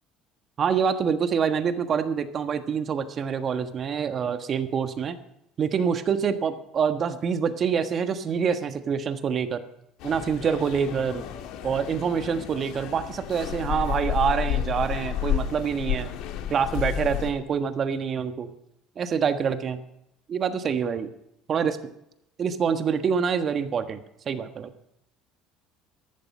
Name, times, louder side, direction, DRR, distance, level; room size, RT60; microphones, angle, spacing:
voice 1, 0.6-5.2 5.6-9.6 10.0-11.2 11.6-16.1 16.5-18.5 19.0-19.8 20.3-21.1 21.5-21.8 22.4-24.7, right 6 dB, 45° right, 9 dB, 1.4 m, -26 dB
sound 1, 10.0-17.3, left 10 dB, 70° left, 1.7 m, -31 dB
14.5 x 11.5 x 5.5 m, 0.81 s
supercardioid pair, 90°, 0 cm